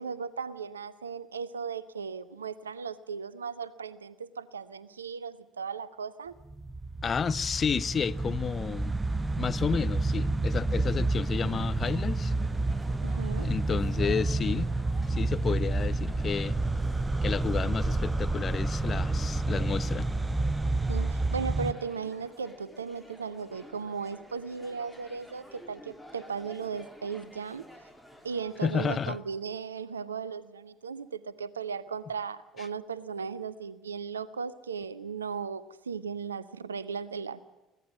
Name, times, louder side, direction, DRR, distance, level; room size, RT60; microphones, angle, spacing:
voice 1, 0.0-6.3 13.0-13.5 20.9-27.6 28.2-37.4, right 6 dB, 80° right, 0.6 m, -36 dB
sound 1, 6.5-21.7, right 2 dB, 20° right, 0.8 m, -29 dB
voice 2, 7.0-9.0 9.4-12.3 13.4-14.7 15.1-16.6 17.2-20.1 28.6-29.2, left 6 dB, 35° left, 0.7 m, -31 dB
sound 2, 10.5-29.2, left 1 dB, 5° left, 3.5 m, -51 dB
23.5 x 17.5 x 7.4 m
figure-of-eight pair, 55°, 0 cm